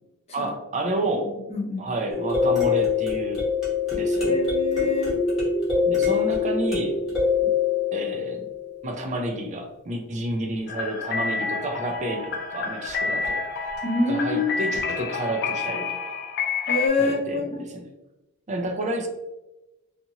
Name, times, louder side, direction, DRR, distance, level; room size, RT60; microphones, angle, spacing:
voice 1, 0.3-1.3 1.8-3.4 3.9-4.4 5.9-7.5 7.9-8.5 8.8-13.4 14.1-16.2 17.0-17.8 18.5-19.1, right 1 dB, 35° right, 3 dB, 0.4 m, -30 dB
voice 2, 1.5-1.9 4.2-5.2 13.8-14.5 16.7-17.6, left 3 dB, 30° left, -2 dB, 0.7 m, -25 dB
sound 1, 2.1-9.0 13.2-13.3 13.8-13.9, left 5 dB, 5° right, 1.1 m, -24 dB
sound 2, 10.7-16.9, left 4 dB, 50° left, 0.3 m, -29 dB
2.7 x 2.4 x 2.8 m, 0.99 s
head